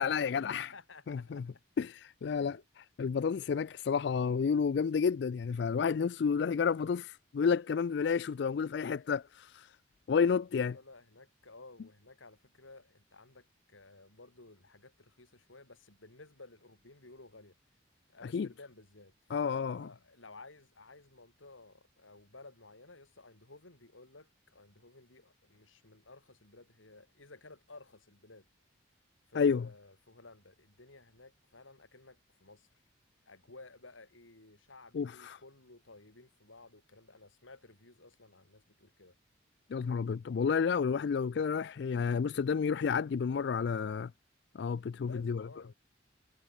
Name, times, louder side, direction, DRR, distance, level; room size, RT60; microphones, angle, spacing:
voice 1, 0.0-0.7 1.1-1.4 1.8-9.7 10.1-10.8 18.3-18.5 19.3-19.9 29.3-29.7 34.9-35.4 39.7-44.1 44.5-45.5, left 6 dB, 60° left, 0.3 m, -31 dB
voice 2, 0.7-1.5 2.2-2.6 3.0-3.3 10.6-17.6 18.1-19.1 19.4-28.5 29.3-32.7 33.3-39.2 43.3-43.9 45.0-45.7, left 3 dB, 90° left, 3.7 m, -55 dB
head